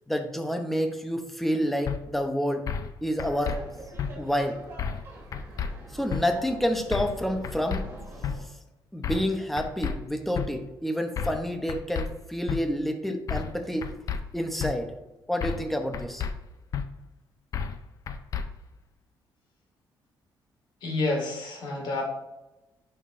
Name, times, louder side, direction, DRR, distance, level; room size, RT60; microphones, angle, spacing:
voice 1, 0.1-2.7 3.0-3.6 4.2-4.6 5.9-7.9 8.9-13.9 14.3-14.9 15.3-16.2, equal, ahead, 5 dB, 0.6 m, -28 dB
sound 1, 1.9-2.0 2.7-2.9 3.2-3.6 4.0-4.1 4.8-5.1 5.3-5.7 6.1-6.2 6.9-7.2 7.4-7.8 8.2-8.4 9.0-9.3 9.6-9.9 10.3-10.5 11.2-11.4 11.7-12.1 12.5-12.6 13.3-13.6 13.8-14.2 14.6-14.7 15.4-15.7 15.9-16.3 16.7-16.8 17.5-17.8 18.1-18.4, left 7 dB, 45° left, 0.5 m, -31 dB
Laughter, 3.3-8.4, right 1 dB, 25° right, 2.4 m, -45 dB
voice 2, 20.8-22.0, left 2 dB, 65° left, 1 dB, 1.9 m, -29 dB
10.0 x 5.6 x 2.5 m, 0.99 s
cardioid pair, 170°, 8 cm